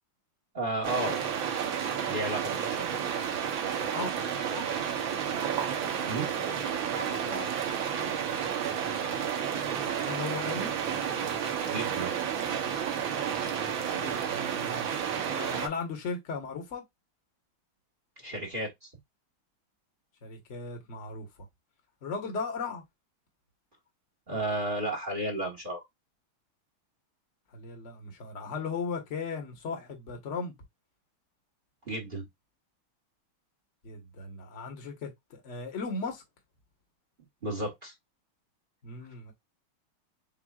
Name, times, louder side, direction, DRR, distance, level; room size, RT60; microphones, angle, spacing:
voice 1, 0.5-1.2 2.1-2.9 6.1-6.3 11.7-12.1 18.2-18.9 24.3-25.8 31.8-32.3 37.4-37.9, right 1 dB, 30° right, 1.2 m, -33 dB
sound 1, 0.8-15.7, right 8 dB, 70° right, 1.7 m, -31 dB
voice 2, 6.9-7.5 10.0-10.8 13.9-14.9 15.3-16.8 20.2-21.3 22.0-22.8 27.5-30.6 33.8-36.2 38.8-39.3, left 4 dB, 40° left, 1.4 m, -37 dB
7.4 x 2.5 x 2.4 m
omnidirectional pair, 2.3 m